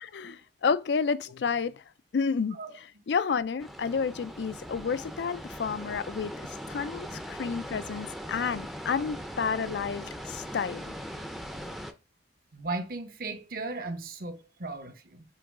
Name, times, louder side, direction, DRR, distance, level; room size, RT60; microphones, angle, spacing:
voice 1, 0.1-1.8 2.1-10.9, left 5 dB, 75° left, 0.4 m, -30 dB
sound 1, 3.6-11.9, equal, ahead, 0.5 m, -40 dB
voice 2, 12.5-15.2, right 3 dB, 55° right, 0.9 m, -36 dB
8.5 x 3.1 x 3.6 m
head